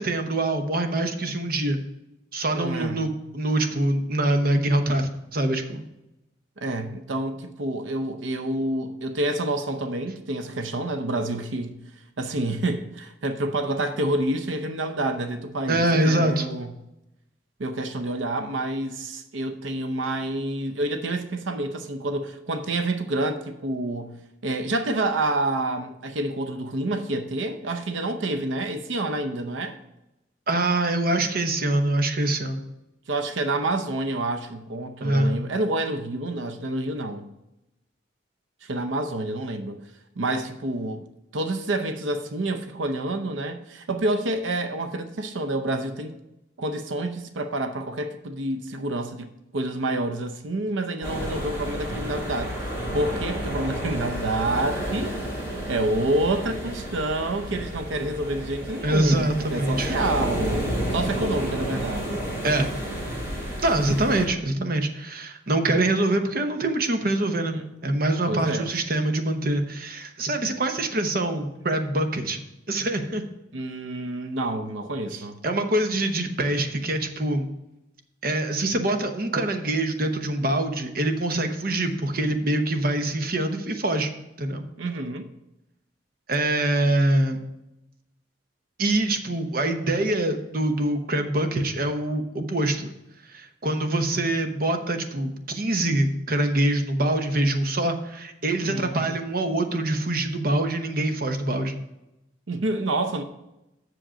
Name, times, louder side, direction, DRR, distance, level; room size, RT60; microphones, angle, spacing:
voice 1, 0.0-1.8 2.3-5.8 15.7-16.5 30.5-32.6 35.0-35.4 58.8-60.0 62.4-62.7 63.6-72.4 72.7-73.2 75.4-77.5 78.2-84.1 84.4-84.6 86.3-87.4 88.8-92.9 93.3-101.8, right 1 dB, 50° right, 0.9 m, -24 dB
voice 2, 2.5-3.1 6.6-11.8 12.2-16.7 17.6-24.2 24.4-29.8 33.1-37.3 38.6-39.8 40.2-41.0 41.3-46.1 46.6-52.6 52.9-55.2 55.5-62.2 67.5-67.6 68.3-68.7 73.5-75.4 84.8-85.3 98.7-99.1 102.5-103.2, right 2 dB, 90° right, 0.7 m, -28 dB
sound 1, 51.0-64.3, equal, 15° right, 2.6 m, -31 dB
7.6 x 6.5 x 5.0 m
head